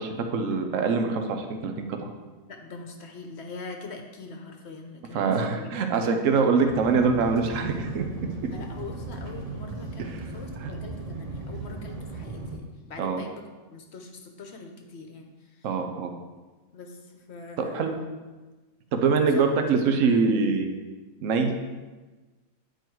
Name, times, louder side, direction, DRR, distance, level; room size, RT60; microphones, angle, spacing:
voice 1, 0.0-2.1 5.1-8.3 10.0-10.3 10.6-10.7 13.0-13.2 15.6-16.1 17.6-17.9 18.9-20.8 21.2-21.7, right 4 dB, 70° right, 5 dB, 1.1 m, -24 dB
voice 2, 2.5-5.8 8.5-13.4 13.7-15.3 16.7-17.0 17.3-18.0 19.3-19.7, left 3 dB, 55° left, 3 dB, 1.0 m, -42 dB
sound 1, 6.7-12.6, right 3 dB, 35° right, 0.7 m, -37 dB
9.4 x 4.6 x 4.5 m, 1.2 s
omnidirectional pair, 1.5 m